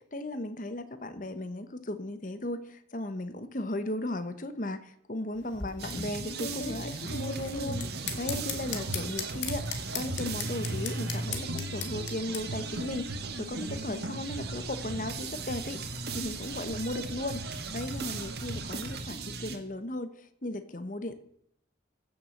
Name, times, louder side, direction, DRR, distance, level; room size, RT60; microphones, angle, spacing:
voice 1, 0.1-7.8 8.2-17.4 17.7-20.1 20.4-21.2, left 1 dB, 45° left, 11 dB, 1.0 m, -36 dB
sound 1, 5.3-12.4, left 6 dB, 75° left, 1.9 m, -37 dB
sound 2, 5.8-19.6, right 4 dB, 55° right, 1.7 m, -38 dB
sound 3, 7.0-19.0, right 1 dB, 85° right, 1.2 m, -40 dB
15.5 x 7.2 x 6.5 m, 0.73 s
head